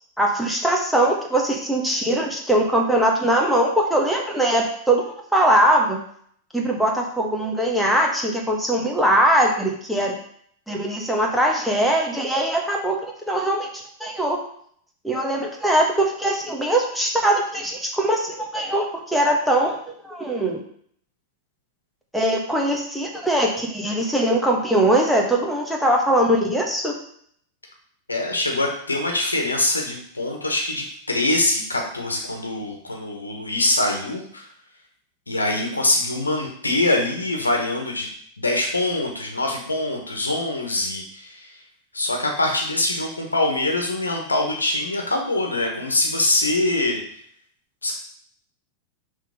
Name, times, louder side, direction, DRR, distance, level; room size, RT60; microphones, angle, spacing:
voice 1, 0.2-6.0 6.5-10.1 10.7-13.0 13.3-13.7 14.0-14.4 15.0-19.8 20.0-20.6 22.1-26.9, right 1 dB, ahead, -1 dB, 1.3 m, -21 dB
voice 2, 28.1-34.5 35.3-38.1 38.4-41.6 41.9-47.0 47.8-47.9, left 2 dB, 80° left, 2 dB, 1.3 m, -24 dB
6.1 x 3.6 x 5.2 m, 0.63 s
figure-of-eight pair, 90°, 0 cm